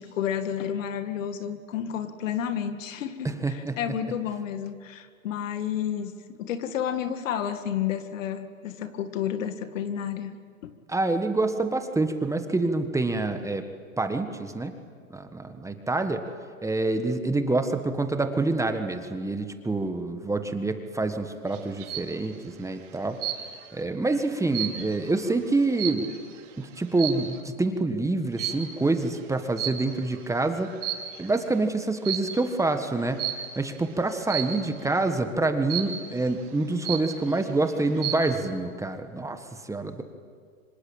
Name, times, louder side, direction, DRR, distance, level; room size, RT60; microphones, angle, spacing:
voice 1, 0.0-6.1 6.4-10.3 10.6-10.8, left 9 dB, 65° left, 10 dB, 2.0 m, -31 dB
voice 2, 3.2-3.8 10.9-13.6 14.0-14.7 15.1-16.2 16.6-23.2 23.7-26.1 26.6-30.8 31.2-33.3 33.5-40.0, right 2 dB, 5° right, 7 dB, 1.5 m, -27 dB
sound 1, 21.5-22.1 23.2-23.7 24.1-26.4 26.9-27.4 28.4-28.8 29.6-30.2 30.7-31.3 32.0-32.4 33.2-33.6 34.3-34.7 35.7-36.2 36.6-36.7 36.8-37.4 37.8-38.3, right 11 dB, 60° right, 3.2 m, -32 dB
25.5 x 25.0 x 9.0 m, 2.1 s
hypercardioid pair, 115°, 41 cm